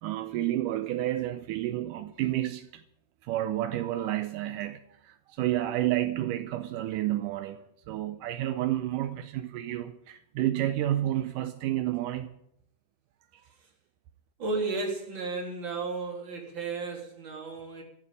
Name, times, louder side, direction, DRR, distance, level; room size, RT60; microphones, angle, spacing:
voice 1, 0.0-2.8 3.2-12.3, right 13 dB, 80° right, 2.3 m, -30 dB
voice 2, 14.4-17.8, right 3 dB, 35° right, 3.7 m, -33 dB
14.0 x 9.5 x 8.5 m
omnidirectional pair, 3.8 m